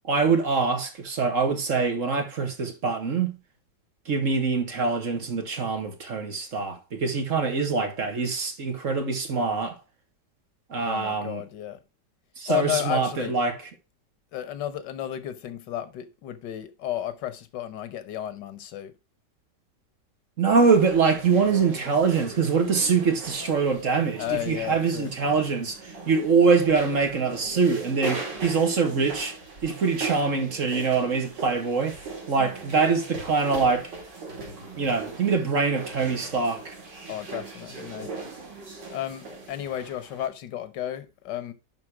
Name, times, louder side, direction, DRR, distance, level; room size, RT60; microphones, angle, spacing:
voice 1, 0.0-3.4 4.0-9.8 10.7-11.4 12.4-13.6 20.4-29.4 29.6-32.0 32.3-33.9 34.8-36.8, right 5 dB, 50° right, 1.8 m, -24 dB
voice 2, 10.8-11.8 12.5-13.3 14.3-18.9 24.2-25.1 37.1-38.1 38.9-41.5, left 12 dB, 85° left, 1.6 m, -32 dB
sound 1, 20.6-40.3, right 3 dB, 90° right, 3.4 m, -39 dB
11.0 x 4.0 x 4.8 m
omnidirectional pair, 1.8 m